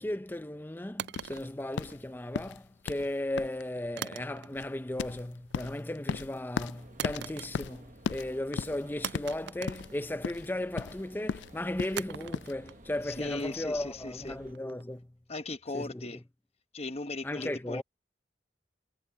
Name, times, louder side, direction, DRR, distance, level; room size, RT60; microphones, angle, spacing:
voice 1, 0.0-15.1 15.7-16.2 17.2-17.8, left 1 dB, 10° left, 0.6 m, -36 dB
sound 1, 1.0-2.4 4.0-4.8 5.1-5.6 7.0-7.9 8.2-8.3 9.0-10.6 12.0-15.0, right 9 dB, 70° right, 0.4 m, -42 dB
sound 2, 1.1-12.5, left 6 dB, 85° left, 0.3 m, -38 dB
sound 3, 6.7-14.5, right 2 dB, 45° right, 1.1 m, -54 dB
voice 2, 13.0-14.4 15.3-16.2 16.7-17.8, left 2 dB, 35° left, 1.1 m, -37 dB
head